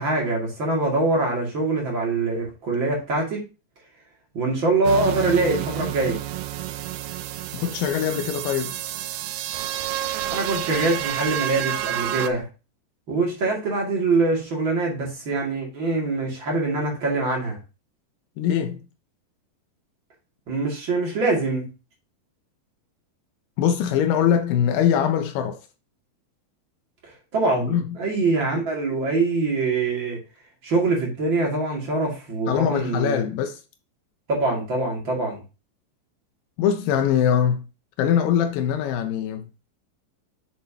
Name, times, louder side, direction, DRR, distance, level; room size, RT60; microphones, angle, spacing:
voice 1, 0.0-3.4 4.3-6.2 10.0-12.5 13.1-17.6 20.5-21.7 27.3-30.2 30.6-33.2 34.3-35.4, right 3 dB, 35° right, 2.5 m, -24 dB
sound 1, 4.8-12.3, right 12 dB, 85° right, 2.2 m, -29 dB
voice 2, 7.5-8.7 18.4-18.9 23.6-25.6 27.6-28.0 32.5-33.6 36.6-37.6 38.0-39.5, left 9 dB, 90° left, 1.9 m, -22 dB
7.8 x 6.8 x 2.9 m
omnidirectional pair, 4.9 m